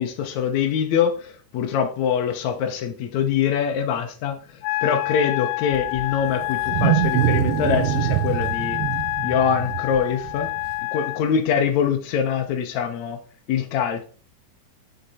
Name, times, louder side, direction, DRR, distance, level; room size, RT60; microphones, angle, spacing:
voice 1, 0.0-4.4 4.8-8.8 9.2-10.5 10.9-13.2 13.5-14.0, left 7 dB, 70° left, 1.8 m, -24 dB
Wind instrument woodwind instrument, 4.6-11.2, left 20 dB, 85° left, 2.5 m, -28 dB
Wild animals, 5.7-10.8, right 14 dB, 90° right, 2.6 m, -24 dB
6.6 x 5.8 x 4.1 m
omnidirectional pair, 4.5 m